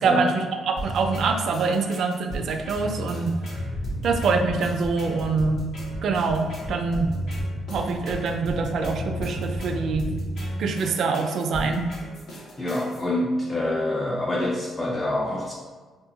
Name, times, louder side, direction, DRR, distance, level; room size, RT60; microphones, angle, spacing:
voice 1, 0.0-3.3 4.0-5.6 6.0-7.1 7.7-10.1 10.6-11.9, right 4 dB, 65° right, 5 dB, 0.3 m, -25 dB
sound 1, 0.8-13.0, right 1 dB, 70° left, 1.0 m, -34 dB
sound 2, 3.5-10.0, equal, 40° left, 0.8 m, -37 dB
voice 2, 12.6-15.5, left 1 dB, 20° left, -1 dB, 0.4 m, -26 dB
2.7 x 2.2 x 3.8 m, 1.4 s
cardioid pair, 90°, 0 cm